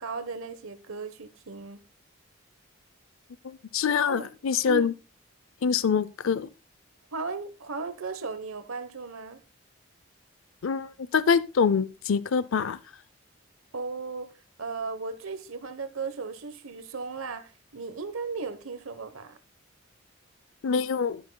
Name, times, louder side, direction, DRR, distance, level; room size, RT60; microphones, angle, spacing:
voice 1, 0.0-1.8 3.9-4.3 4.7-5.0 7.1-9.4 13.7-14.3 14.6-19.4, right 4 dB, 90° right, 1.0 m, -36 dB
voice 2, 3.7-4.9 5.6-6.5 10.6-12.8 20.6-21.2, left 6 dB, 80° left, 0.5 m, -25 dB
12.5 x 10.5 x 2.2 m
head